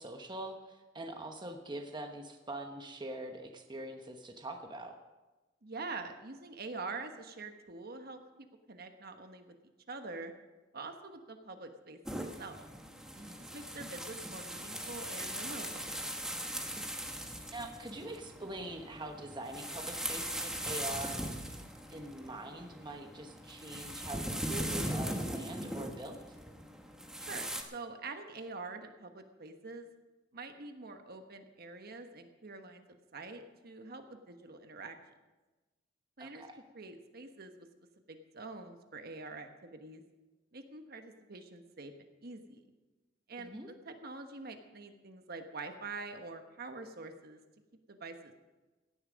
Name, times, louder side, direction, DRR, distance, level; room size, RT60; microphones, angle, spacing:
voice 1, 0.0-4.9 13.2-13.5 17.5-21.5 21.9-26.4 36.2-36.6 43.4-43.7, right 1 dB, 25° right, 4 dB, 1.1 m, -44 dB
voice 2, 5.6-9.5 9.9-10.3 10.7-12.0 12.4-12.6 13.5-15.9 27.2-29.9 30.3-32.8 33.1-35.0 36.2-36.4 36.7-37.7 38.1-40.0 40.5-41.9 42.2-42.6 43.3-47.4 47.9-48.3, right 3 dB, 55° right, 6 dB, 1.3 m, -45 dB
sound 1, 12.1-27.6, equal, 5° right, 1.3 m, -40 dB
17.0 x 11.0 x 5.2 m, 1.1 s
head